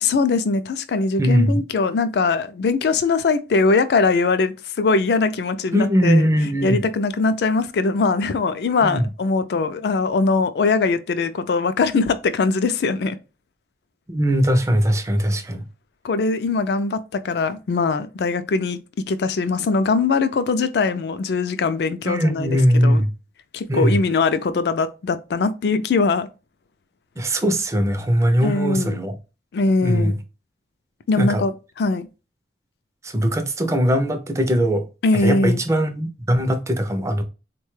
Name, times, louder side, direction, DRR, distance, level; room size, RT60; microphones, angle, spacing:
voice 1, 0.0-6.3 6.6-13.2 16.0-18.8 19.1-23.0 23.5-26.3 28.4-29.0 29.5-30.2 31.1-32.1 35.0-35.6, left 4 dB, 65° left, 0.3 m, -21 dB
voice 2, 1.2-1.5 5.7-6.8 8.8-9.1 14.1-15.6 22.1-23.1 23.7-24.0 27.2-29.1 29.8-30.1 31.2-31.4 33.1-34.8 35.2-37.2, equal, 15° right, 0.4 m, -20 dB
3.9 x 2.2 x 3.1 m
head